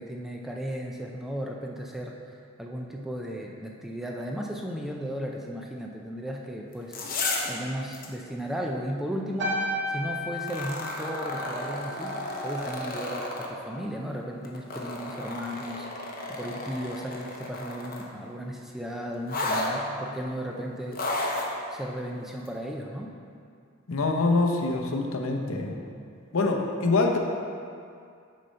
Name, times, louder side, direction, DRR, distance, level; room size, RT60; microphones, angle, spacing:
voice 1, 0.0-23.1, equal, ahead, 0 dB, 0.4 m, -35 dB
sound 1, 6.7-7.6 7.9-8.1 10.4-13.5 14.4-18.1 19.3-19.7 20.9-21.5 22.5-22.6, left 2 dB, 45° left, 0.8 m, -32 dB
sound 2, 9.4-14.0 14.3-14.7, equal, 55° right, 0.9 m, -35 dB
voice 2, 23.9-25.8 26.3-27.2, left 3 dB, 75° left, 2 dB, 0.7 m, -25 dB
6.5 x 4.2 x 5.3 m, 2.3 s
head